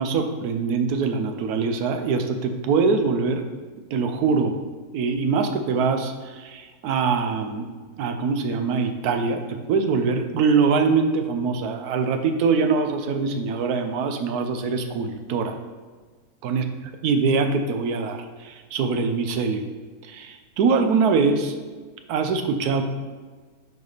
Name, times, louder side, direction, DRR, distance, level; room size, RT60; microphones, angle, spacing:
voice 1, 0.0-3.4 3.9-4.6 4.9-7.7 8.0-15.6 16.4-16.6 17.0-19.7 20.0-21.5 22.1-22.8, right 5 dB, 70° right, 6 dB, 1.1 m, -23 dB
7.2 x 4.8 x 4.0 m, 1.4 s
omnidirectional pair, 1.8 m